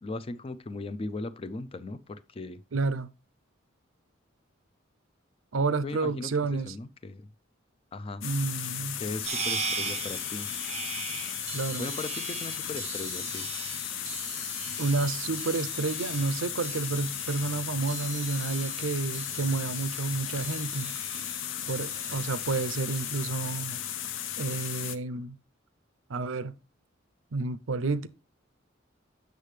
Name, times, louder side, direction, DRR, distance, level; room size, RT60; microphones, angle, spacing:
voice 1, 0.0-2.6 5.8-7.3 7.9-8.2 9.0-10.5 11.8-13.4 22.3-22.4, left 2 dB, 30° left, 0.4 m, -38 dB
voice 2, 2.7-3.1 5.5-6.7 8.2-9.0 11.5-11.9 14.8-21.0 21.7-23.8 24.4-25.4 26.1-26.6 27.3-28.1, right 3 dB, 80° right, 0.6 m, -30 dB
sound 1, 8.2-25.0, left 10 dB, 70° left, 0.6 m, -35 dB
sound 2, 9.2-23.3, right 6 dB, 30° right, 0.6 m, -40 dB
8.2 x 6.5 x 3.2 m
head